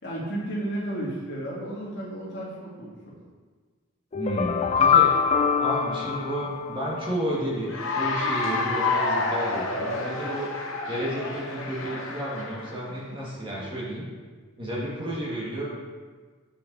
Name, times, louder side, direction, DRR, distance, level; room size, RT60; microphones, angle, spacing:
voice 1, 0.0-3.1, right 1 dB, 55° left, -6 dB, 2.2 m, -33 dB
sound 1, 4.1-7.2, left 7 dB, 30° left, 0.3 m, -23 dB
voice 2, 4.1-5.1 5.6-10.5 10.9-14.1 14.6-15.7, equal, 25° right, -6 dB, 1.7 m, -31 dB
Cheering / Applause, 7.6-12.8, left 3 dB, 80° left, 1.0 m, -29 dB
8.5 x 5.8 x 4.0 m, 1.5 s
head